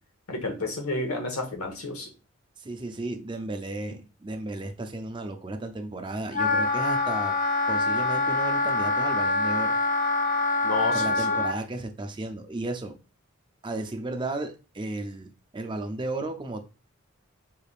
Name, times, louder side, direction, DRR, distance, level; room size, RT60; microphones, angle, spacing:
voice 1, 0.3-2.1 10.6-11.4, left 2 dB, 75° left, 1.0 m, -31 dB
voice 2, 2.6-7.4 7.7-9.8 10.9-13.0 13.6-16.6, right 2 dB, 20° right, 0.4 m, -34 dB
Wind instrument woodwind instrument, 6.3-11.5, left 2 dB, 40° left, 0.6 m, -25 dB
5.4 x 3.3 x 2.4 m
head